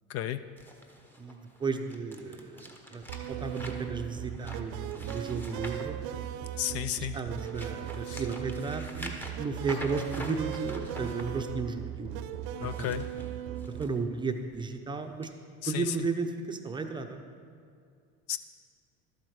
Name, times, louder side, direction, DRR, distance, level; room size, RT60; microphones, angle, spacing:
voice 1, 0.1-0.4 6.6-7.2 8.1-8.2 12.6-13.1 15.6-16.1 18.3-18.4, left 11 dB, 50° left, 13 dB, 0.4 m, -33 dB
sound 1, 0.6-6.7 7.2-11.2 12.5-13.9 14.3-14.6 15.2-15.3, equal, 5° left, 0.9 m, -45 dB
voice 2, 1.2-3.0 3.3-6.0 7.0-12.2 12.6-13.0 13.8-15.3 15.7-17.2, right 4 dB, 15° right, 6 dB, 0.6 m, -34 dB
sound 2, 3.1-13.8, right 11 dB, 65° right, 0.6 m, -38 dB
12.5 x 7.7 x 4.8 m, 2.2 s
supercardioid pair, 125°, 32 cm